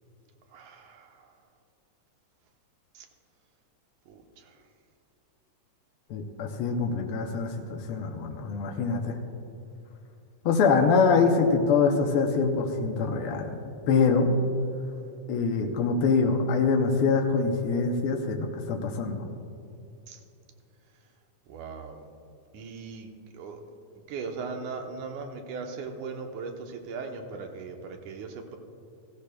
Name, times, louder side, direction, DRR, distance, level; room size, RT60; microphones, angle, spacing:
voice 1, 0.5-1.3 2.9-3.1 4.1-4.6 20.1-20.2 21.5-22.0 22.5-23.6 24.1-28.6, right 4 dB, 85° right, 3 dB, 2.4 m, -39 dB
voice 2, 6.1-9.2 10.4-13.5 13.9-14.3 15.3-19.3, left 4 dB, 75° left, 2 dB, 1.3 m, -24 dB
16.0 x 15.0 x 2.3 m, 2.6 s
omnidirectional pair, 3.5 m